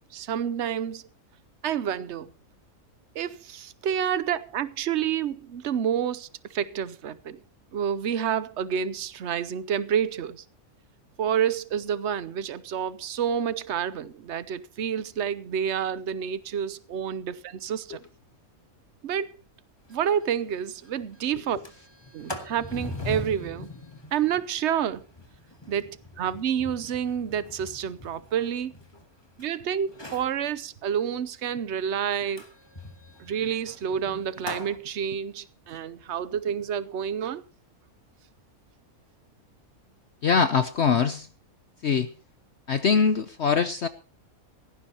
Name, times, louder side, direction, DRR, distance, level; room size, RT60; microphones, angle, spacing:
voice 1, 0.1-1.0 1.6-2.3 3.1-7.4 7.7-10.4 11.2-18.0 19.0-19.3 19.9-21.6 22.1-23.7 24.1-25.0 25.7-28.7 29.4-32.5 33.2-37.4, right 8 dB, 55° right, 1.1 m, -29 dB
Sliding door, 19.9-20.0 20.3-20.4 20.8-21.1 21.4-29.4 29.9-30.4 32.4-34.8, left 1 dB, 20° left, 1.9 m, -41 dB
voice 2, 40.2-41.3 41.8-42.1 42.7-43.9, left 6 dB, 55° left, 1.0 m, -23 dB
17.5 x 15.5 x 3.0 m
omnidirectional pair, 1.5 m